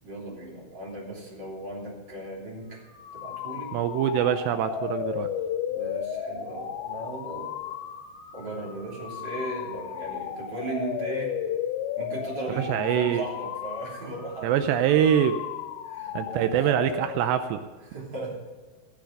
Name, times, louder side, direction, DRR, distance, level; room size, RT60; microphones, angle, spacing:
voice 1, 0.0-2.8 3.1-3.7 5.7-7.5 8.3-11.3 12.0-14.9 15.8-16.6 17.9-18.4, right 2 dB, 25° right, -4 dB, 3.4 m, -37 dB
sound 1, 2.8-17.5, left 9 dB, 90° left, 3.1 m, -34 dB
voice 2, 3.7-5.3 12.6-13.2 14.4-15.4 16.2-17.6, right 10 dB, 80° right, 9 dB, 2.7 m, -24 dB
15.5 x 7.0 x 6.4 m, 1.4 s
omnidirectional pair, 5.1 m